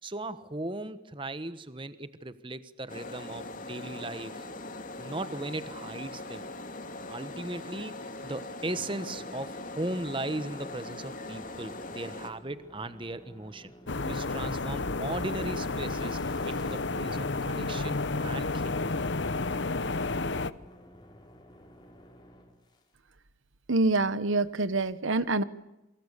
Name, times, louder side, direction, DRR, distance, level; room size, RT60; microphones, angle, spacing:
voice 1, 0.0-4.5 5.0-6.5 7.1-13.7 14.0-16.2 16.5-18.8, right 2 dB, 25° right, 13 dB, 1.1 m, -37 dB
sound 1, 2.9-12.3, left 2 dB, 40° left, 2.6 m, -41 dB
sound 2, 8.3-22.9, equal, 20° left, 4.2 m, -54 dB
sound 3, 13.9-20.5, left 3 dB, 60° left, 1.0 m, -31 dB
voice 2, 23.7-25.4, right 2 dB, 75° right, 15 dB, 1.2 m, -26 dB
29.0 x 24.0 x 8.3 m, 0.93 s
head